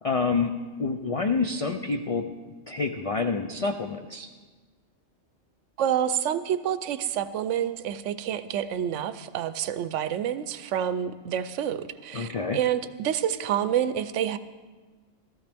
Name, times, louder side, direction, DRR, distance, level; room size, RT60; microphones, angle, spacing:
voice 1, 0.0-0.5 0.8-2.3 2.7-4.3 12.1-12.6, left 4 dB, 65° left, 5 dB, 0.3 m, -27 dB
voice 2, 5.8-14.4, right 9 dB, 75° right, 13 dB, 0.9 m, -28 dB
15.0 x 13.5 x 3.5 m, 1.3 s
omnidirectional pair, 1.3 m